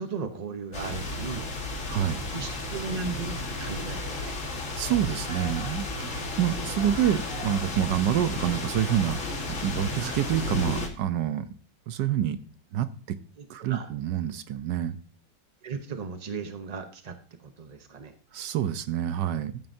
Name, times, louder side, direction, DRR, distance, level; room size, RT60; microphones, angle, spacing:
voice 1, 0.0-1.5 2.3-4.4 10.0-10.2 13.4-13.9 15.6-18.1, right 4 dB, 55° right, 7 dB, 0.4 m, -36 dB
sound 1, 0.7-10.9, left 2 dB, 45° left, 1.9 m, -33 dB
voice 2, 1.9-2.2 4.8-9.2 9.5-11.5 11.9-12.4 12.7-13.2 13.5-15.0 18.3-19.6, right 11 dB, 75° right, 11 dB, 1.3 m, -27 dB
14.0 x 9.2 x 2.7 m, 0.41 s
omnidirectional pair, 2.0 m